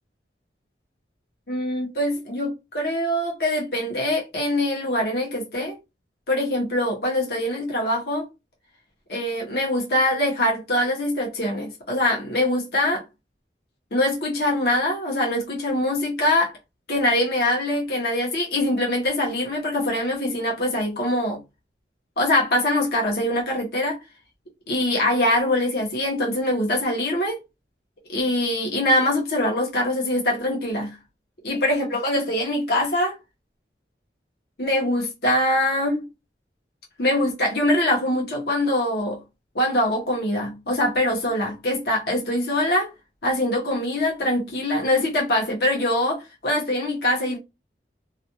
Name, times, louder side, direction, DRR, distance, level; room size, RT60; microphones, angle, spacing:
voice 1, 1.5-5.7 6.3-8.3 9.1-13.0 13.9-16.5 16.9-21.4 22.2-24.0 24.7-27.4 28.1-31.0 31.4-33.2 34.6-36.1 37.0-39.2 39.5-42.9 43.2-47.4, left 1 dB, 60° left, 0.8 m, -23 dB
2.3 x 2.2 x 2.8 m
head